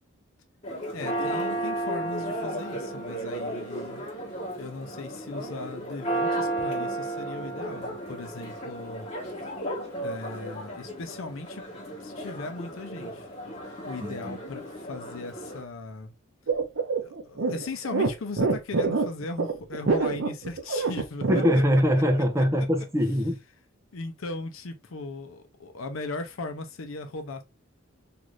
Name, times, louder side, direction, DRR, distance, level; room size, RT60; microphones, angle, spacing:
Church bell, 0.6-15.6, right 1 dB, 30° left, 1.1 m, -34 dB
voice 1, 0.9-4.0 4.6-9.1 10.0-11.7 12.0-13.3 13.8-16.1 17.0-21.3 22.4-22.7 23.9-27.4, left 3 dB, 75° left, 0.6 m, -38 dB
voice 2, 14.0-14.4 21.3-23.4, equal, 15° right, 0.4 m, -23 dB
sound 1, 16.5-21.8, right 4 dB, 60° right, 0.5 m, -26 dB
2.6 x 2.5 x 3.0 m
head